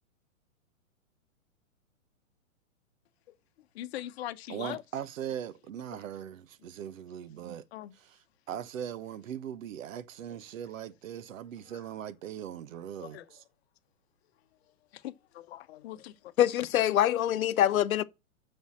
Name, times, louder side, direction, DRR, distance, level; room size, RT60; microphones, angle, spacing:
voice 1, 3.7-4.8 5.9-6.0 7.7-7.9 11.6-11.8 13.0-13.2 14.9-16.3, left 13 dB, 50° left, 0.9 m, -41 dB
voice 2, 4.5-7.6 8.0-8.2 8.5-13.4, right 9 dB, 65° right, 1.0 m, -40 dB
voice 3, 16.4-18.0, left 11 dB, 75° left, 0.8 m, -24 dB
7.2 x 5.5 x 7.4 m
hypercardioid pair, 135°, 42 cm